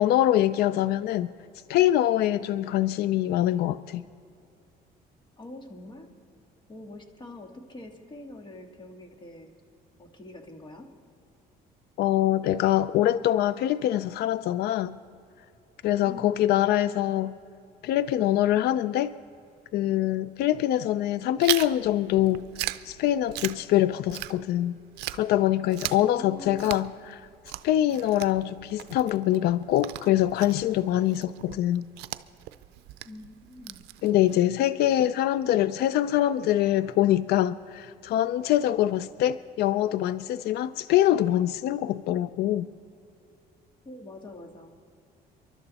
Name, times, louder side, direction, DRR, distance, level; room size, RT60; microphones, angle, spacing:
voice 1, 0.0-1.3 1.7-4.0 12.0-15.0 15.8-17.3 17.8-19.1 19.7-22.5 22.8-24.8 25.1-27.2 27.6-31.9 34.0-42.7, left 13 dB, 70° left, 16 dB, 0.4 m, -24 dB
voice 2, 5.4-6.4 6.7-9.5 10.0-10.9 16.0-16.4 25.8-26.9 33.1-33.8 43.8-44.7, left 1 dB, 25° left, 4 dB, 1.9 m, -45 dB
Chewing mastication, 21.4-24.7 25.0-34.4, right 16 dB, 80° right, 0.5 m, -37 dB
27.0 x 12.0 x 4.1 m, 2.6 s
cardioid pair, 110°, 17 cm